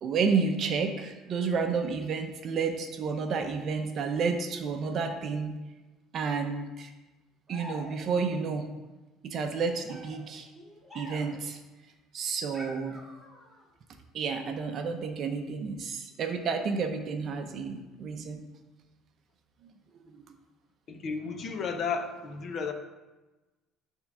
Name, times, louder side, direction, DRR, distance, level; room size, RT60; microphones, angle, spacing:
voice 1, 0.0-5.6 6.1-6.9 7.5-8.7 9.2-10.5 10.9-11.6 12.1-13.0 14.1-18.4, right 5 dB, 35° right, 6 dB, 0.7 m, -30 dB
sound 1, 7.5-8.3 9.5-11.5 12.5-13.6, left 1 dB, ahead, 2.0 m, -47 dB
voice 2, 20.9-22.7, left 5 dB, 30° left, 6 dB, 0.7 m, -33 dB
10.0 x 3.7 x 6.2 m, 1.1 s
cardioid pair, 180°, 0 cm